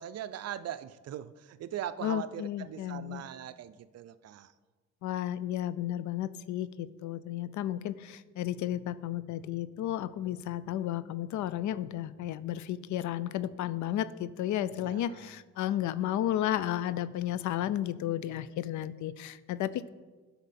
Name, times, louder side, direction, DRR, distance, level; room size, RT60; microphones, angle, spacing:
voice 1, 0.0-4.5 14.8-15.4, right 10 dB, 55° right, 14 dB, 0.5 m, -40 dB
voice 2, 2.0-3.2 5.0-19.9, left 12 dB, 70° left, 16 dB, 0.5 m, -33 dB
9.7 x 5.8 x 4.2 m, 1.3 s
cardioid pair, 90°, 30 cm